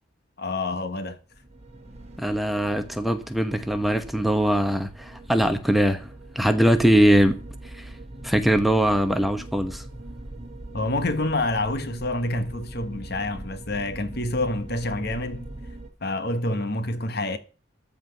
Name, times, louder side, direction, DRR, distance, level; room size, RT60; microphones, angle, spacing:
voice 1, 0.4-1.2 10.7-15.5 16.0-17.4, left 2 dB, 60° left, 1.3 m, -27 dB
sound 1, 1.3-15.9, right 1 dB, 35° right, 1.7 m, -41 dB
voice 2, 2.2-6.1 6.3-7.4 7.7-7.9 8.2-9.8, equal, ahead, 1.0 m, -21 dB
13.5 x 4.7 x 6.8 m
head